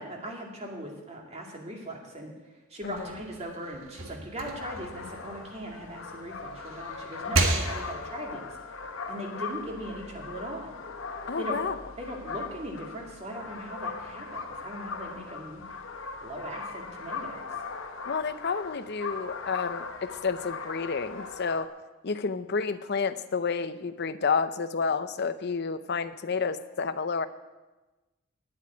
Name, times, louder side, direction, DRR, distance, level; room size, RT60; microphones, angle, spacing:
voice 1, 0.0-2.3 2.7-8.5 9.1-10.7 11.4-11.6 12.0-15.6 16.2-17.4, right 1 dB, 30° right, 0 dB, 2.4 m, -39 dB
sound 1, 2.8-6.0 6.4-8.2, right 2 dB, 80° right, 1.6 m, -32 dB
sound 2, 4.4-21.6, left 4 dB, 70° left, 1.0 m, -39 dB
voice 2, 11.3-11.8 18.1-21.7 22.0-27.3, left 5 dB, 55° left, 12 dB, 0.6 m, -30 dB
9.6 x 8.5 x 9.6 m, 1.1 s
head